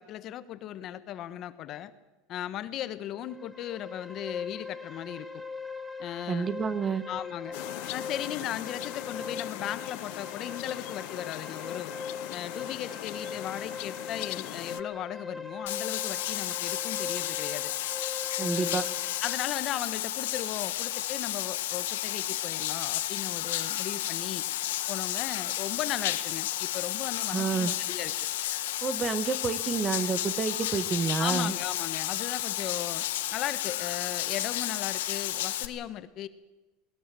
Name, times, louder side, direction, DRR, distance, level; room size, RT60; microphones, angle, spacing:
voice 1, 0.0-1.9 2.3-5.4 6.0-6.5 7.1-7.6 7.9-11.9 12.3-17.7 18.4-18.8 19.2-24.4 24.9-28.1 31.2-36.3, left 11 dB, 40° left, 12 dB, 1.3 m, -37 dB
sound 1, 3.1-19.5, left 4 dB, ahead, 1.7 m, -41 dB
voice 2, 6.3-7.0 18.4-18.8 27.3-27.7 28.8-31.5, right 5 dB, 25° right, 13 dB, 1.3 m, -29 dB
sound 2, 7.5-14.8, left 20 dB, 65° left, 0.7 m, -40 dB
Bathtub (filling or washing), 15.7-35.7, left 14 dB, 90° left, 1.5 m, -32 dB
21.0 x 19.5 x 7.7 m, 1.1 s
supercardioid pair, 130°, 0 cm